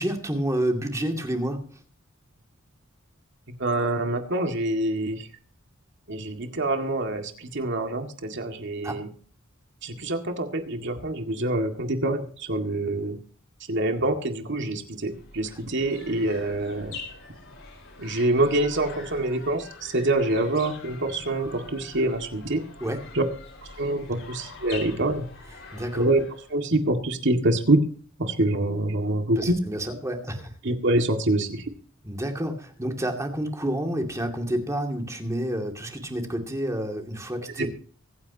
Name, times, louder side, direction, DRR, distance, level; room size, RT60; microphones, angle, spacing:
voice 1, 0.0-1.6 8.8-9.0 22.8-23.0 25.7-26.1 29.4-30.5 32.0-37.7, right 1 dB, 15° right, 3 dB, 2.4 m, -29 dB
voice 2, 3.6-5.3 6.1-9.1 9.8-13.2 13.7-17.0 18.0-22.6 23.1-23.2 23.8-25.2 25.9-26.2 26.5-27.8 28.2-29.6 30.6-31.7 37.6-37.7, right 2 dB, 60° right, 4 dB, 2.0 m, -25 dB
sound 1, 15.0-26.6, left 3 dB, 75° left, 5.4 m, -44 dB
24.0 x 9.5 x 2.8 m, 0.43 s
head